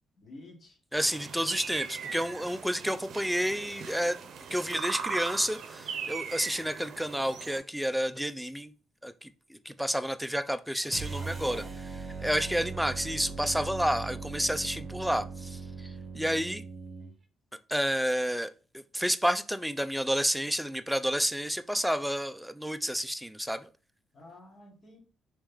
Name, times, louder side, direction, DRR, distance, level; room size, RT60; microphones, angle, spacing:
voice 1, 0.2-0.8 1.2-1.3 10.8-11.8 24.1-25.0, left 2 dB, 50° left, 0 dB, 1.5 m, -50 dB
voice 2, 0.9-4.2 4.5-8.7 9.0-11.6 12.2-15.9 16.1-16.6 17.7-18.5 18.9-23.7, equal, ahead, 11 dB, 0.3 m, -30 dB
sound 1, 0.9-7.6, right 6 dB, 70° right, 0.6 m, -39 dB
sound 2, 10.9-17.1, right 4 dB, 35° right, 0.8 m, -39 dB
3.3 x 3.1 x 3.4 m, 0.37 s
cardioid pair, 90°, 0 cm